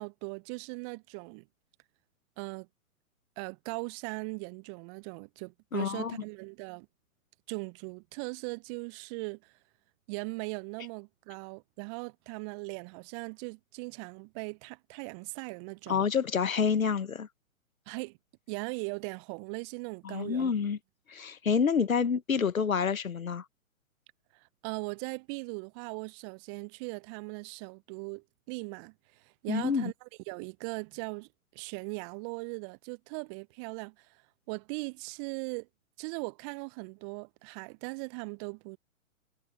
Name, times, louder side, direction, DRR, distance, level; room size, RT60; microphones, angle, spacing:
voice 1, 0.0-1.4 2.4-2.7 3.4-6.9 7.5-9.5 10.1-16.1 17.9-18.2 18.5-20.5 24.3-34.2 34.5-35.7 36.0-38.8, right 35 dB, 20° right, 0.8 m, -39 dB
voice 2, 5.7-6.2 15.9-17.3 20.0-20.8 21.1-23.4 29.5-29.9, left 6 dB, 70° left, 1.4 m, -28 dB
figure-of-eight pair, 120°, 42 cm